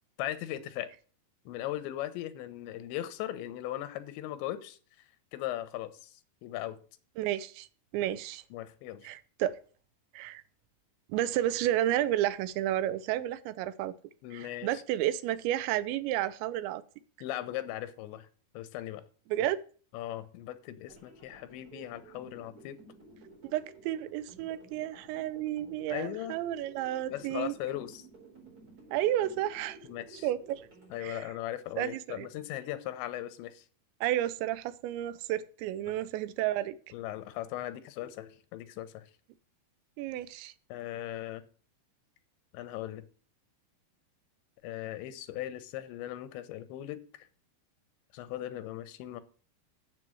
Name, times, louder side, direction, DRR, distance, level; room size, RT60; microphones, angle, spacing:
voice 1, 0.2-0.9 1.5-4.8 5.3-6.8 8.5-9.1 14.2-14.8 17.2-18.3 18.5-19.0 19.9-22.8 25.9-26.4 27.1-28.1 29.8-30.3 30.9-33.7 36.9-39.1 40.7-41.4 42.5-43.0 44.6-47.3 48.1-49.2, left 13 dB, 90° left, 3.1 m, -38 dB
voice 2, 7.2-7.7 7.9-8.4 9.0-9.6 10.1-10.4 11.1-13.9 14.3-16.8 19.3-19.6 23.5-27.5 28.9-29.8 30.2-30.6 31.0-31.3 31.8-32.3 34.0-36.8 40.0-40.5, right 13 dB, 85° right, 2.9 m, -31 dB
sound 1, 20.9-31.1, right 3 dB, 20° right, 4.0 m, -54 dB
7.6 x 7.5 x 7.7 m
omnidirectional pair, 5.2 m